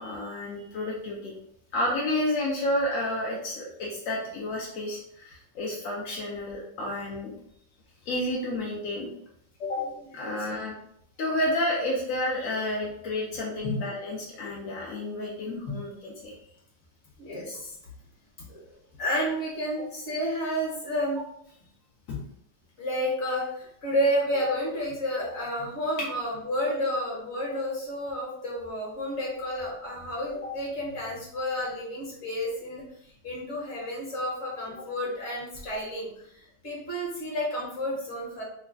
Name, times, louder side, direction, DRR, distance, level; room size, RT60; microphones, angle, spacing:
voice 1, 0.0-1.3 1.7-7.3 8.1-9.1 10.2-10.7 11.2-16.3, left 1 dB, 65° left, -3 dB, 0.8 m, -30 dB
voice 2, 9.6-10.4 13.6-13.8 15.7-15.8 17.2-17.7 18.5-18.6 19.0-21.2 22.1-22.2 22.8-32.8 33.2-38.4, equal, 40° left, -4 dB, 1.4 m, -31 dB
3.2 x 2.2 x 3.8 m, 0.71 s
omnidirectional pair, 2.1 m